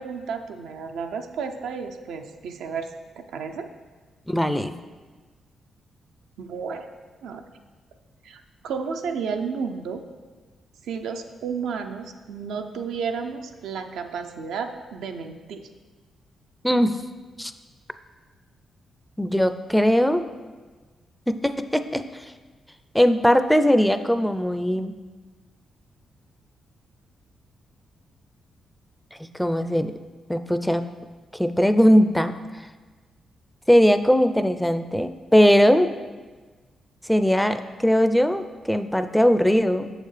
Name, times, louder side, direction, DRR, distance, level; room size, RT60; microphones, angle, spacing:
voice 1, 0.0-2.9 3.2-3.7 6.4-6.9 7.2-7.4 8.2-10.0 10.8-15.7, right 5 dB, 90° right, 5 dB, 0.4 m, -32 dB
voice 2, 4.3-4.7 16.6-17.0 17.4-17.5 19.2-20.2 21.3-22.0 22.9-24.9 29.4-29.9 30.3-30.8 31.4-32.3 33.7-35.9 37.1-39.9, equal, 5° left, 10 dB, 0.4 m, -19 dB
6.6 x 6.5 x 3.2 m, 1.3 s
cardioid pair, 75°, 0 cm